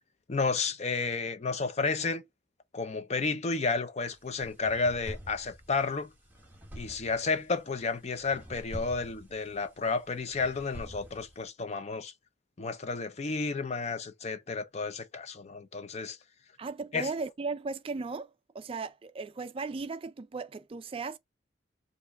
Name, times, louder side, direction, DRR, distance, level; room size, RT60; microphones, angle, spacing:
voice 1, 0.3-2.3 2.7-6.1 6.8-12.1 12.6-16.2 16.9-17.1, left 4 dB, 35° left, 0.5 m, -32 dB
sound 1, 4.1-11.4, equal, 10° right, 1.2 m, -47 dB
voice 2, 16.6-18.3 18.5-21.2, right 4 dB, 30° right, 0.3 m, -36 dB
4.8 x 2.6 x 3.5 m
head